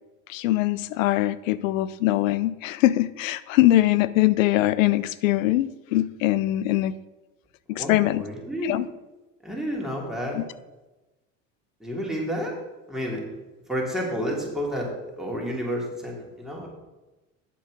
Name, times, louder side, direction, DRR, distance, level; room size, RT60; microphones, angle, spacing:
voice 1, 0.3-6.9 7.7-8.2 8.6-8.8 10.3-10.4, left 15 dB, 90° left, 17 dB, 0.5 m, -22 dB
voice 2, 7.7-8.8 9.4-10.4 11.8-12.5 12.9-13.2 13.7-16.7, equal, ahead, -3 dB, 3.1 m, -30 dB
8.6 x 7.2 x 4.9 m, 1.1 s
supercardioid pair, 85°, 38 cm